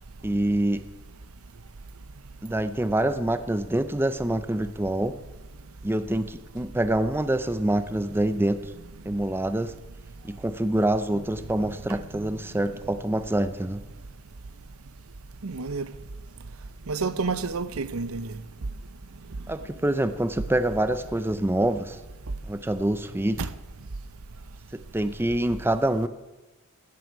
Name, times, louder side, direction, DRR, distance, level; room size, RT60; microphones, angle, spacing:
voice 1, 0.2-0.9 2.4-5.2 5.8-8.6 9.1-9.7 10.2-13.8 19.5-22.0 22.5-23.4 24.7-26.1, right 1 dB, 10° right, 0.5 m, -26 dB
voice 2, 15.4-15.9 16.9-18.3 23.4-23.5, right 4 dB, 75° right, 0.8 m, -29 dB
15.5 x 13.0 x 4.7 m
head